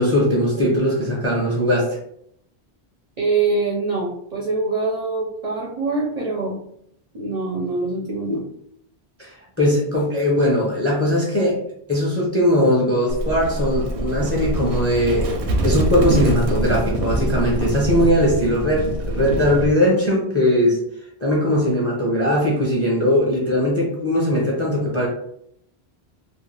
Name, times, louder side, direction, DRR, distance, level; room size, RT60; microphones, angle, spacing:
voice 1, 0.0-1.9 9.2-11.6 11.9-15.3 15.6-20.8 21.2-25.1, equal, 20° left, -3 dB, 0.4 m, -19 dB
voice 2, 3.2-6.6 7.1-8.4, right 3 dB, 50° right, -4 dB, 0.5 m, -24 dB
Livestock farm animals working animals, 13.1-19.8, right 1 dB, 80° right, 0.8 m, -24 dB
2.4 x 2.1 x 3.1 m, 0.71 s
omnidirectional pair, 1.1 m